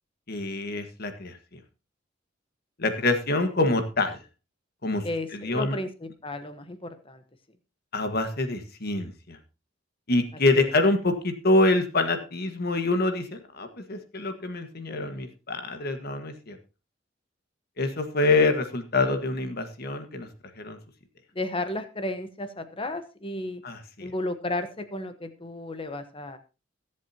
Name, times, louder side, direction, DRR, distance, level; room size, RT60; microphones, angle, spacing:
voice 1, 0.3-1.6 2.8-4.2 4.8-5.8 7.9-9.4 10.1-16.6 17.8-20.3 20.6-20.8 23.6-24.1, left 2 dB, 55° left, 7 dB, 1.6 m, -26 dB
voice 2, 5.0-7.2 10.5-10.7 21.3-23.6 24.0-26.4, left 2 dB, 30° left, 9 dB, 1.2 m, -33 dB
22.0 x 7.6 x 2.9 m, 0.30 s
head